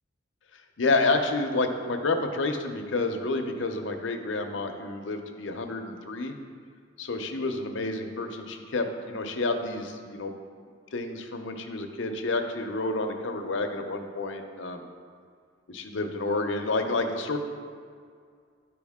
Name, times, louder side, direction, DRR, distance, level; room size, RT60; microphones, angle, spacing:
voice 1, 0.8-6.3 7.0-10.3 10.9-14.9 15.7-17.4, left 3 dB, 75° left, 5 dB, 0.7 m, -29 dB
11.0 x 4.8 x 3.6 m, 2.1 s
head